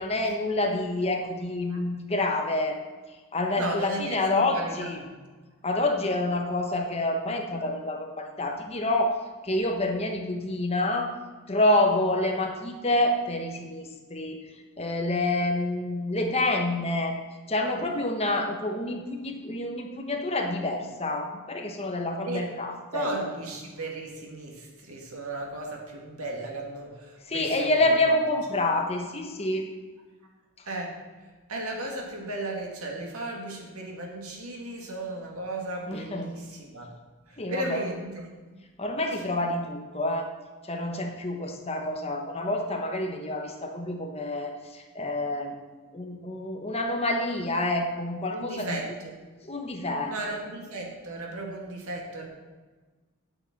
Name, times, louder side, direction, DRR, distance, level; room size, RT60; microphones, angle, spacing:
voice 1, 0.0-2.8 3.3-5.0 5.6-11.1 11.5-14.4 14.8-17.1 17.5-23.3 27.3-29.7 35.9-36.3 37.4-37.8 38.8-40.3 40.7-45.5 45.9-48.8 49.4-50.1, left 2 dB, 30° left, 3 dB, 1.1 m, -28 dB
voice 2, 3.5-5.1 22.2-22.5 22.9-28.2 30.7-36.9 37.3-38.3 39.1-39.2 48.3-49.2 50.0-52.3, right 2 dB, 85° right, 0 dB, 2.2 m, -35 dB
9.4 x 7.8 x 6.0 m, 1.3 s
head